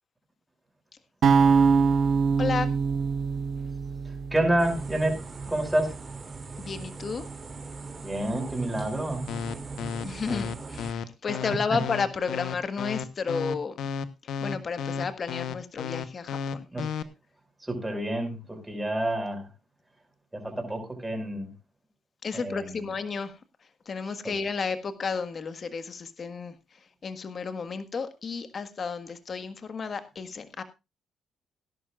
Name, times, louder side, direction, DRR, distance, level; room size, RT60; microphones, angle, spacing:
sound 1, 1.2-5.4, right 5 dB, 60° right, 1.3 m, -24 dB
voice 1, 2.4-2.7 6.6-7.2 10.0-13.7 14.4-16.7 22.2-23.3 23.9-26.5 27.0-30.6, left 5 dB, 45° left, 1.5 m, -32 dB
voice 2, 4.3-5.2 5.5-5.9 8.0-9.3 11.7-11.8 16.7-16.9 17.6-19.5 20.3-21.5 22.3-22.9 24.1-24.4, right 1 dB, 10° right, 5.7 m, -29 dB
sound 2, 4.6-10.9, right 4 dB, 35° right, 2.7 m, -39 dB
sound 3, 9.3-17.0, left 7 dB, 75° left, 1.0 m, -33 dB
18.0 x 11.0 x 2.5 m
cardioid pair, 90°, 0 cm